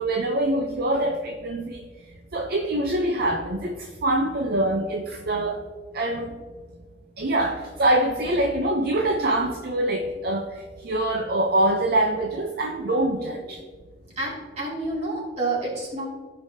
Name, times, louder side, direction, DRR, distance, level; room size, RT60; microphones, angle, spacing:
voice 1, 0.0-1.8 2.3-3.7 4.0-5.6 5.9-6.3 7.2-10.5 10.8-13.6, right 1 dB, 55° right, 3 dB, 0.6 m, -24 dB
voice 2, 14.2-16.1, right 2 dB, 35° right, -5 dB, 2.5 m, -29 dB
14.5 x 5.4 x 2.8 m, 1.5 s
head